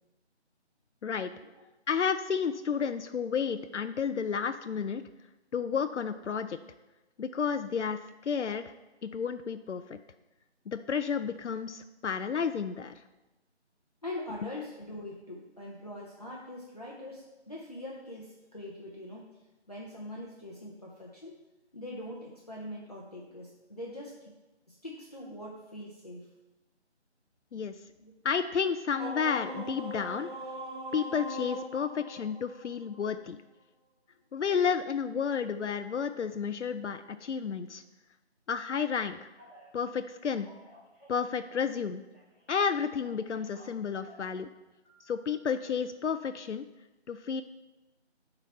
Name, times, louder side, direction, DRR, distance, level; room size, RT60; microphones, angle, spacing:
voice 1, 1.0-1.3 1.9-5.0 5.5-6.6 7.2-8.6 9.0-10.0 10.7-13.0 27.5-27.7 28.2-30.3 30.9-33.4 34.3-37.8 38.5-39.2 39.7-40.5 41.1-42.0 42.5-44.5 45.1-46.7 47.1-47.4, left 6 dB, 80° left, 10 dB, 0.5 m, -31 dB
voice 2, 14.0-19.3 19.7-21.4 21.7-24.3 24.7-26.3 28.0-28.1, left 1 dB, 35° left, -4 dB, 0.8 m, -42 dB
sound 1, 29.0-33.2, right 1 dB, 45° right, 0.7 m, -41 dB
Telephone, 39.3-39.7 40.2-41.8 42.1-44.3 44.8-45.5, left 1 dB, 10° right, 1.5 m, -57 dB
9.1 x 4.0 x 4.3 m, 1.1 s
figure-of-eight pair, 175°, 35 cm